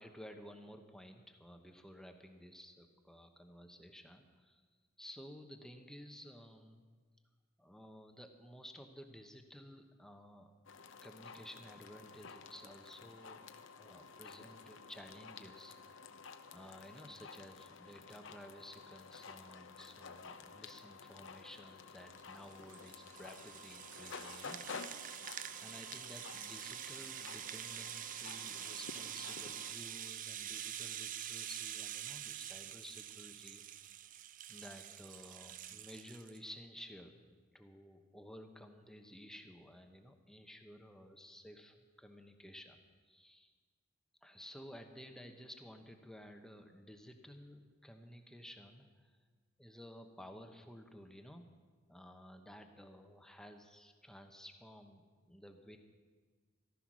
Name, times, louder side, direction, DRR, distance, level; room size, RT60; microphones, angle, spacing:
voice 1, 0.0-4.6 5.0-6.8 7.6-10.5 11.0-13.4 13.8-15.7 16.5-25.0 25.6-33.6 34.5-42.8 43.0-43.5 44.2-49.1 49.6-51.4 51.9-55.8, equal, 5° left, 5 dB, 1.0 m, -54 dB
sound 1, 10.6-29.7, left 5 dB, 65° left, 0.8 m, -52 dB
Rattle (instrument), 22.2-36.4, right 10 dB, 40° right, 0.5 m, -46 dB
14.5 x 13.0 x 6.2 m, 1.5 s
head